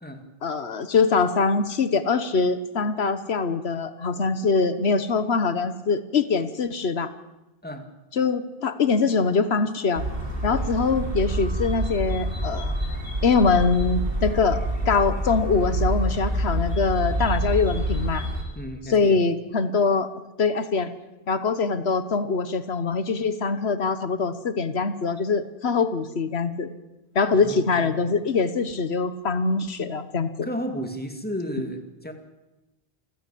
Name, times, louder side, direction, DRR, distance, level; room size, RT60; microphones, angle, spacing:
voice 1, 0.4-7.1 8.1-10.0 10.4-12.7 13.2-18.2 18.9-20.1 20.4-20.9 21.3-26.7 27.1-30.5, left 4 dB, 85° left, 12 dB, 1.4 m, -23 dB
sound 1, 10.0-18.4, right 1 dB, 65° right, 4.5 m, -27 dB
voice 2, 18.6-19.2 27.3-28.0 30.4-32.1, equal, 10° left, 5 dB, 2.5 m, -33 dB
28.0 x 15.0 x 8.5 m, 1.0 s
omnidirectional pair, 1.0 m